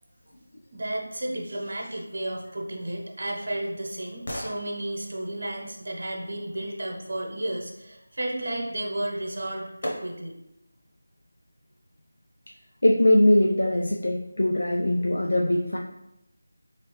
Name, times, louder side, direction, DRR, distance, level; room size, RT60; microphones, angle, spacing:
voice 1, 0.7-10.3, right 1 dB, 60° right, 0 dB, 0.8 m, -32 dB
sound 1, 2.9-6.8 8.9-9.0 9.8-10.5 11.0-11.1, equal, 40° left, 0.8 m, -41 dB
voice 2, 12.8-15.8, left 1 dB, 90° left, -1 dB, 0.4 m, -21 dB
3.7 x 3.1 x 3.1 m, 0.86 s
figure-of-eight pair, 175°, 0 cm